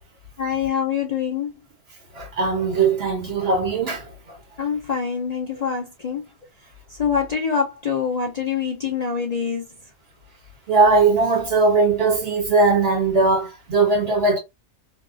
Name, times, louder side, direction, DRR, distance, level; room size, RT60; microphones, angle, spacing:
voice 1, 0.4-1.5 4.6-6.2 6.9-9.6, left 6 dB, 60° left, 0.4 m, -25 dB
voice 2, 2.1-4.1 10.7-14.4, right 3 dB, 45° right, 1.5 m, -19 dB
2.8 x 2.3 x 2.5 m
omnidirectional pair, 1.5 m